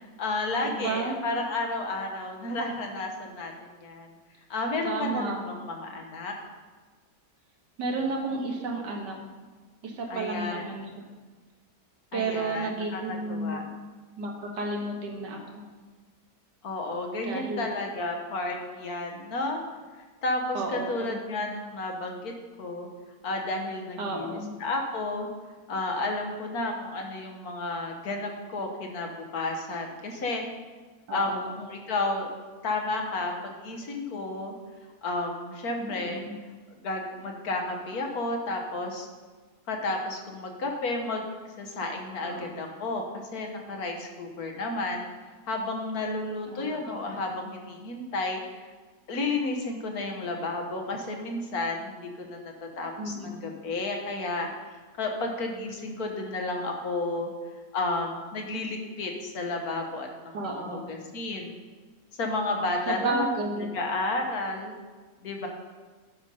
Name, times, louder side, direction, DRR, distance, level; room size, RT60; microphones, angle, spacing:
voice 1, 0.0-4.1 4.5-6.4 10.1-10.8 12.1-13.6 16.6-19.6 20.2-22.3 22.6-22.9 23.2-25.3 25.7-30.4 31.1-32.3 32.6-34.5 35.0-36.2 36.8-39.1 39.7-41.3 41.6-45.0 45.5-48.4 49.1-57.3 57.7-61.6 62.2-63.3 63.6-64.7 65.2-65.5, left 2 dB, 65° left, 2 dB, 1.5 m, -32 dB
voice 2, 0.6-1.2 4.8-5.4 7.8-9.2 9.8-10.9 12.1-13.8 14.2-15.6 17.2-17.7 20.5-21.2 24.0-24.5 31.1-31.5 35.8-36.4 42.2-42.6 46.5-46.9 53.0-53.4 60.3-60.9 62.9-63.7, right 3 dB, 90° right, 1 dB, 2.0 m, -32 dB
10.5 x 5.2 x 5.3 m, 1.4 s
omnidirectional pair, 1.8 m